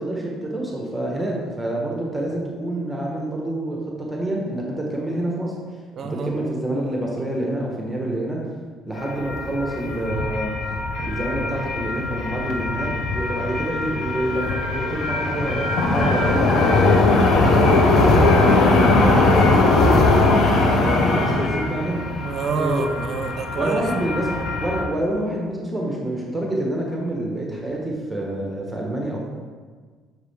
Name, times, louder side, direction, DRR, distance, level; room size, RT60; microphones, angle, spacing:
voice 1, 0.0-5.6 6.0-8.4 8.9-10.5 11.0-20.3 20.7-22.1 22.5-22.9 23.6-29.3, right 1 dB, 5° right, -2 dB, 1.1 m, -27 dB
voice 2, 6.0-6.4 22.2-23.8, right 5 dB, 40° right, 6 dB, 0.6 m, -27 dB
sound 1, 9.0-24.8, left 2 dB, 55° left, 0.9 m, -20 dB
6.3 x 4.8 x 3.5 m, 1.5 s
cardioid pair, 120°, 0 cm